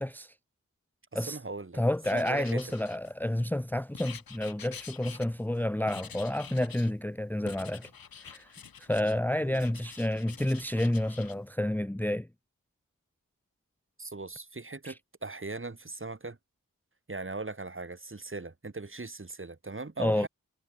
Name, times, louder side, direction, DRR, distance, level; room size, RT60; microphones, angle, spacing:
voice 1, 0.0-0.3 1.1-1.4 1.7-7.9 8.2-8.5 8.8-12.3 14.8-14.9 20.0-20.3, left 1 dB, 5° left, 0.9 m, -30 dB
voice 2, 1.1-1.8 2.1-2.6 9.4-9.6 14.0-16.4 17.1-20.3, right 3 dB, 35° right, 3.4 m, -39 dB
Writing, 2.0-3.4 3.9-5.6 5.9-6.9 7.5-9.2 9.5-11.4, left 7 dB, 80° left, 2.0 m, -48 dB
cardioid pair, 40°, 35 cm